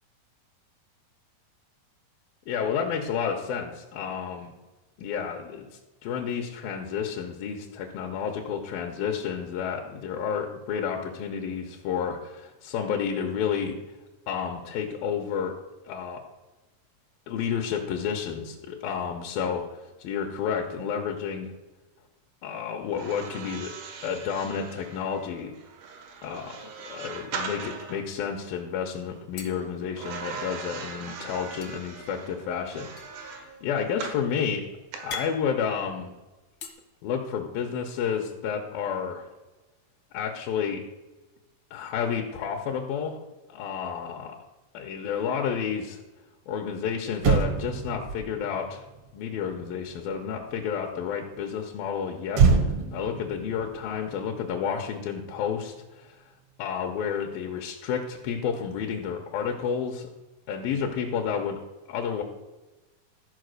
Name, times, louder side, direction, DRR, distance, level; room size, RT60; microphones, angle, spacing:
voice 1, 2.5-4.5 5.0-5.7 6.0-13.8 14.3-15.5 15.8-16.2 17.3-21.5 22.4-23.7 24.0-25.5 26.2-33.2 33.6-34.6 35.0-36.1 37.0-39.3 40.1-40.8 41.7-43.2 43.5-44.4 44.7-46.0 46.5-48.8 49.1-56.2 56.6-60.1 60.5-61.6 61.9-62.2, left 7 dB, 80° left, 2 dB, 2.7 m, -30 dB
sound 1, 22.9-28.0 30.0-34.3 34.9-35.2, right 5 dB, 85° right, 3.1 m, -39 dB
sound 2, 26.0-26.9 27.3-27.4 27.7-28.4 29.3-30.6 31.6-36.7, left 5 dB, 65° left, 1.3 m, -44 dB
Motor vehicle (road), 46.7-46.8 47.1-50.7 52.3-54.9 55.2-55.4, right 5 dB, 70° right, 1.5 m, -27 dB
13.5 x 4.8 x 6.5 m, 1.1 s
omnidirectional pair, 4.2 m